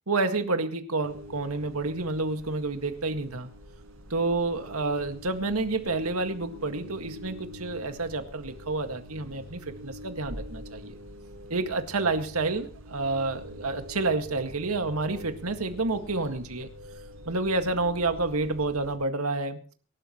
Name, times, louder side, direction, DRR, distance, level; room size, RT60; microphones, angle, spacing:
voice 1, 0.1-3.5 4.1-11.0 11.5-16.7 17.3-19.6, right 3 dB, 85° right, 7 dB, 1.9 m, -29 dB
sound 1, 1.0-19.0, equal, 70° right, 5.6 m, -45 dB
24.0 x 12.0 x 3.1 m, 0.41 s
head